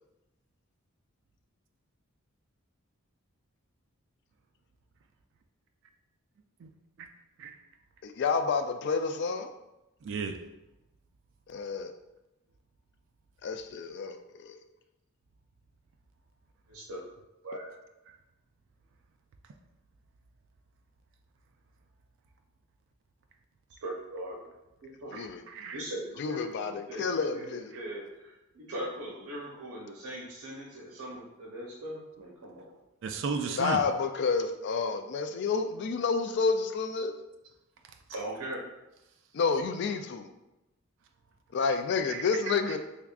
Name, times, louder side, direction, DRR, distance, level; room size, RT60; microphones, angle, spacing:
voice 1, 8.0-9.5 11.5-11.9 13.4-14.6 25.1-25.4 26.2-27.7 33.6-37.1 39.3-40.3 41.5-42.8, left 5 dB, 50° left, 0.3 m, -29 dB
voice 2, 10.0-10.4 25.1-25.8 33.0-33.8 42.1-42.8, right 5 dB, 60° right, 0.3 m, -35 dB
voice 3, 16.7-17.0 17.4-17.7 23.8-24.4 25.0-25.1 25.7-32.7 38.1-38.6, right 1 dB, 85° right, 0.7 m, -40 dB
3.5 x 3.5 x 2.3 m
head